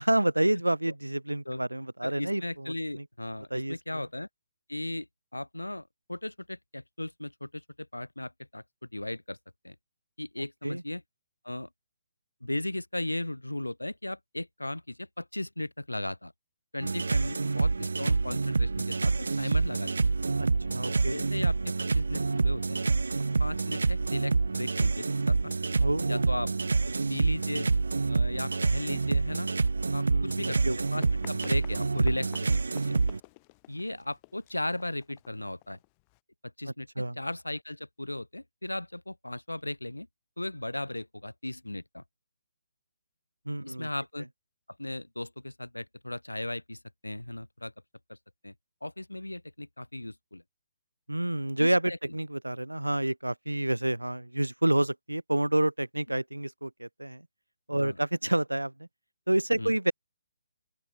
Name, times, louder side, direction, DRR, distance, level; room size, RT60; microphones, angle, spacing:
voice 1, 0.0-3.0 3.5-4.0 10.6-10.8 20.4-21.2 25.8-26.3 30.1-30.8 37.0-37.2 43.5-43.9 51.1-57.2 57.7-58.7 59.3-59.9, right 1 dB, 90° right, 0.8 m, -29 dB
voice 2, 2.0-4.3 4.7-5.1 5.3-8.6 8.9-9.4 9.6-9.7 10.2-11.0 11.4-11.7 12.4-16.3 16.7-19.9 21.1-22.8 23.4-25.5 26.1-26.5 26.9-27.7 28.1-29.5 29.9-30.6 30.9-33.0 33.7-35.8 36.6-36.9 37.2-40.1 40.4-42.0 43.6-44.3 44.8-47.7 48.1-48.2 48.4-48.5 48.8-50.4 51.6-51.8 57.8-58.0 59.6-59.7, left 1 dB, 85° left, 1.5 m, -36 dB
sound 1, 16.8-33.2, right 4 dB, 70° right, 0.3 m, -27 dB
Run, 30.7-36.2, left 30 dB, 25° left, 6.0 m, -53 dB
open air
figure-of-eight pair, 140°, 0 cm